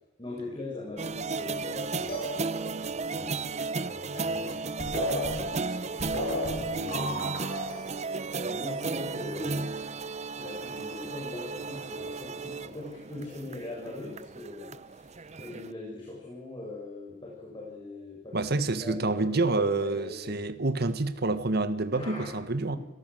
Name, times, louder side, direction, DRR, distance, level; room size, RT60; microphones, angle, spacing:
voice 1, 0.2-4.6 5.4-6.1 6.6-7.4 8.4-9.8 10.4-20.5 21.9-22.2 22.7-22.8, left 2 dB, 25° left, 7.2 m, -41 dB
sound 1, 1.0-15.7, right 4 dB, 35° right, 0.8 m, -34 dB
sound 2, 2.1-2.9 4.5-4.6 4.8-7.8, left 1 dB, 50° left, 7.9 m, -34 dB
voice 2, 18.3-22.8, right 3 dB, 55° right, 1.6 m, -28 dB
29.0 x 18.0 x 7.8 m
head